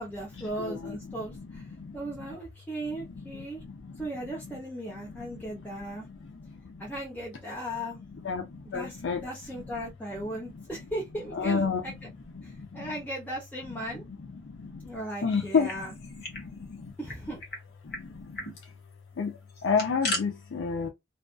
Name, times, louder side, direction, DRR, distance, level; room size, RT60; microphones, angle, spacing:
voice 1, 0.0-1.6 1.9-3.6 4.0-6.0 6.8-8.0 8.7-9.0 9.2-11.9 12.4-14.0 14.8-15.9 17.0-17.4, right 1 dB, 10° left, 0.7 m, -37 dB
voice 2, 0.6-1.0 8.2-8.4 8.7-9.2 11.3-11.8 15.2-15.7 19.2-19.3 19.6-20.9, left 5 dB, 80° left, 0.5 m, -27 dB
sound 1, 15.4-16.5 16.7-16.8 17.1-17.6 17.9-18.0 18.3-18.5 19.5-20.2, left 2 dB, 55° left, 1.0 m, -35 dB
2.5 x 2.4 x 2.2 m
head